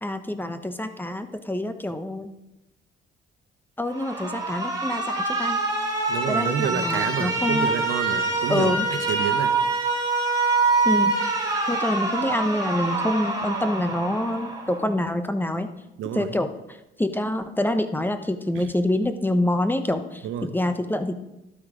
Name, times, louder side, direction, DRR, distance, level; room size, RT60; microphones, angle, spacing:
voice 1, 0.0-2.3 3.8-5.6 6.3-7.7 8.5-8.9 10.8-11.2 11.7-15.7 16.1-21.3, left 1 dB, 10° left, 9 dB, 0.9 m, -26 dB
Alarm, 3.9-14.9, right 3 dB, 15° right, 3.0 m, -25 dB
voice 2, 6.1-8.7 9.1-9.6 16.0-16.3 18.5-18.7 20.2-20.5, right 8 dB, 85° right, 9 dB, 1.1 m, -28 dB
12.0 x 8.7 x 5.0 m, 0.96 s
cardioid pair, 90°, 20 cm